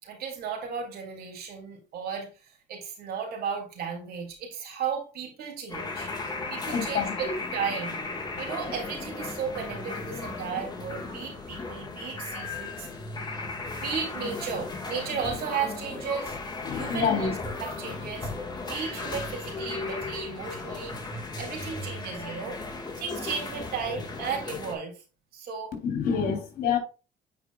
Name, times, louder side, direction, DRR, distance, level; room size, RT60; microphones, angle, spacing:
voice 1, 0.0-8.0 8.4-12.9 13.8-16.4 16.7-17.3 17.6-18.3 18.6-21.0 21.4-22.6 23.0-25.0 25.3-25.7, right 6 dB, 70° right, 3.1 m, -34 dB
sound 1, 5.7-24.8, left 3 dB, 25° left, 1.9 m, -36 dB
voice 2, 6.7-7.4 16.6-17.3 25.8-26.8, left 6 dB, 60° left, 3.7 m, -27 dB
9.2 x 4.9 x 2.5 m
cardioid pair, 110°, 17 cm